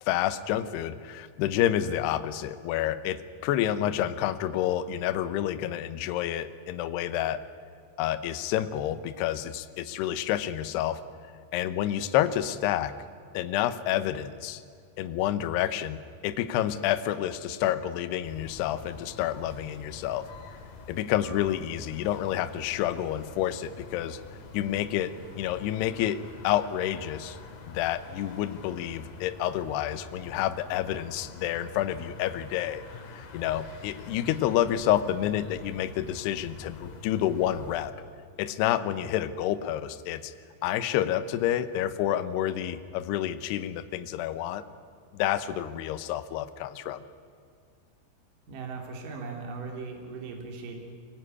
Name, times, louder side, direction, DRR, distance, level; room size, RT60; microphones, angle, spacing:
voice 1, 0.0-7.4 8.0-11.0 11.5-12.9 13.3-14.6 15.0-20.3 20.9-24.2 24.5-27.4 27.7-32.8 33.1-37.9 38.4-40.3 40.6-44.6 45.1-47.0, left 12 dB, 80° left, 10 dB, 2.4 m, -29 dB
sound 1, 18.2-37.9, left 4 dB, 50° left, 3.3 m, -46 dB
voice 2, 48.5-50.8, right 4 dB, 45° right, 2 dB, 4.0 m, -38 dB
24.0 x 19.0 x 9.8 m, 2.3 s
omnidirectional pair, 5.9 m